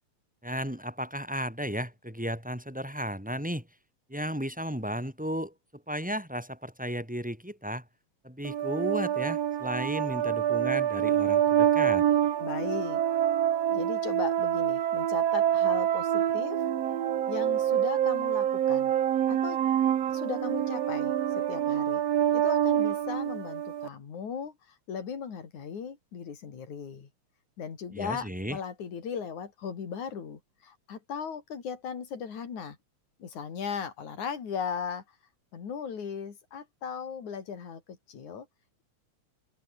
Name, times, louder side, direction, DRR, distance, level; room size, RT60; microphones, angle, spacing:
voice 1, 0.4-3.7 4.1-7.8 8.2-12.1 27.9-28.6, equal, 5° right, 3.8 m, -34 dB
sound 1, 8.4-23.9, right 10 dB, 60° right, 2.4 m, -26 dB
voice 2, 12.4-13.0 13.7-16.6 17.3-18.9 19.3-19.6 20.1-22.0 22.3-27.1 27.6-32.8 33.2-35.0 35.5-38.5, left 6 dB, 75° left, 4.7 m, -37 dB
omnidirectional pair, 3.4 m